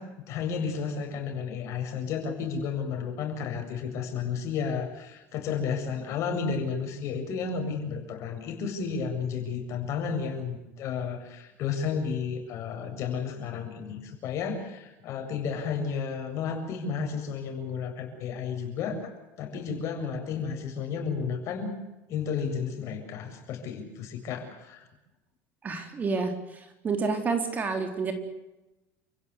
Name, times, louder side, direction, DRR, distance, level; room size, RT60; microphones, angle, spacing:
voice 1, 0.0-21.7 22.1-24.9, left 6 dB, 50° left, 4 dB, 7.5 m, -32 dB
voice 2, 25.6-28.1, right 4 dB, 25° right, 6 dB, 4.0 m, -29 dB
30.0 x 16.5 x 8.3 m, 0.99 s
supercardioid pair, 135°, 6 cm